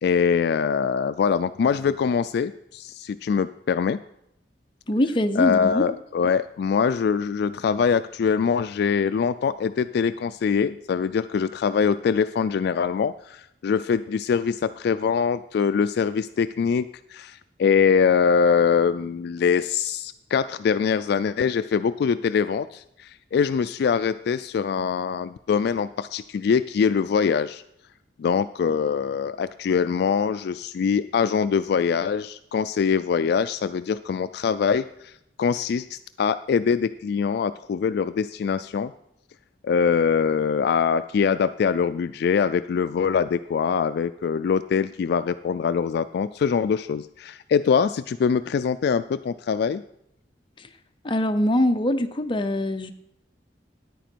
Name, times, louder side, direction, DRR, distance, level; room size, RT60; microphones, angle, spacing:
voice 1, 0.0-4.0 5.4-27.6 28.2-35.1 35.4-38.9 39.6-49.8, left 6 dB, 60° left, 13 dB, 0.3 m, -23 dB
voice 2, 4.9-5.9 50.6-50.7 51.0-52.9, left 1 dB, 25° left, 7 dB, 0.7 m, -23 dB
10.0 x 9.2 x 4.5 m, 0.76 s
head